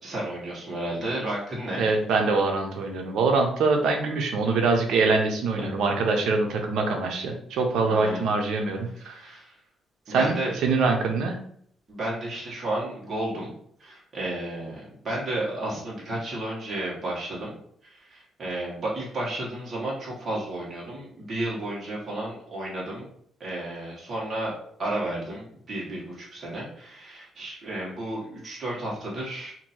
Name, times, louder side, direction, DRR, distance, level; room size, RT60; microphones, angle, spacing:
voice 1, 0.0-1.8 5.6-5.7 7.9-8.2 8.9-9.6 10.1-10.5 11.9-13.5 13.8-17.6 17.8-23.1 23.4-24.5 24.8-29.5, right 1 dB, 40° right, -6 dB, 1.5 m, -32 dB
voice 2, 1.8-9.2 10.1-11.4, right 3 dB, 80° right, 3 dB, 0.7 m, -24 dB
2.9 x 2.6 x 4.2 m, 0.64 s
cardioid pair, 90°, 0 cm